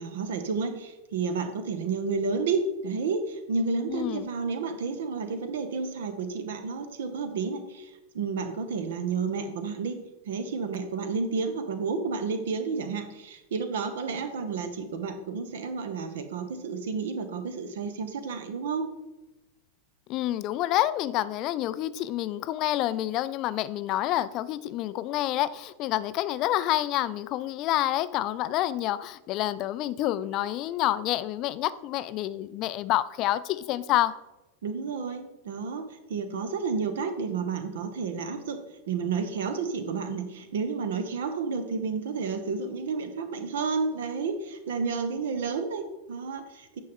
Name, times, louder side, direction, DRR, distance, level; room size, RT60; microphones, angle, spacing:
voice 1, 0.0-9.9 10.2-18.9 34.6-38.6 38.9-46.8, right 4 dB, 60° right, 0.9 m, -31 dB
voice 2, 3.9-4.3 20.1-34.1, left 14 dB, 40° left, 0.3 m, -28 dB
9.0 x 5.3 x 3.6 m
figure-of-eight pair, 90°, 0 cm